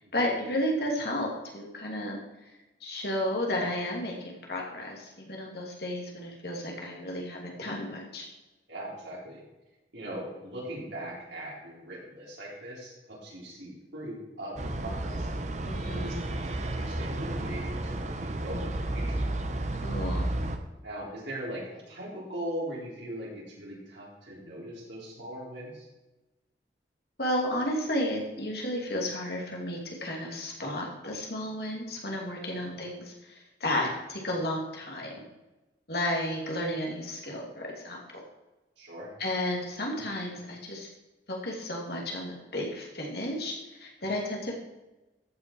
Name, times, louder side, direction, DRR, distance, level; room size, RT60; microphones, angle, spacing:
voice 1, 0.1-2.2 2.8-8.3 15.7-16.2 19.8-20.2 27.2-35.2 35.9-38.2 39.2-40.9 41.3-44.6, left 1 dB, 60° left, -1 dB, 2.6 m, -32 dB
voice 2, 8.7-9.4 9.9-15.3 15.9-19.2 20.8-25.9 32.6-32.8 38.8-39.1, right 1 dB, 85° right, -4 dB, 4.1 m, -40 dB
sound 1, 14.6-20.6, right 1 dB, 40° right, 0.8 m, -32 dB
14.0 x 5.9 x 4.7 m, 1.1 s
head